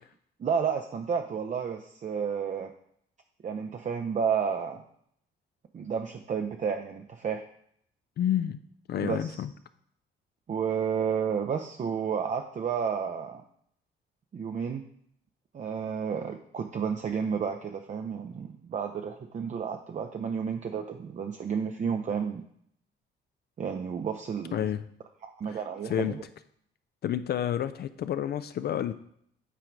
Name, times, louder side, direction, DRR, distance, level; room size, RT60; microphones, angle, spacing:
voice 1, 0.4-2.7 3.4-4.8 5.7-7.4 9.0-9.4 10.5-13.4 14.3-14.9 15.5-22.4 23.6-24.6 25.2-26.2, right 6 dB, 40° right, 5 dB, 0.5 m, -31 dB
voice 2, 8.2-8.6 8.9-9.5 24.5-24.9 25.4-25.6 25.8-26.2 27.0-28.9, left 10 dB, 55° left, 11 dB, 0.4 m, -29 dB
9.1 x 3.8 x 4.6 m, 0.69 s
cardioid pair, 90°, 20 cm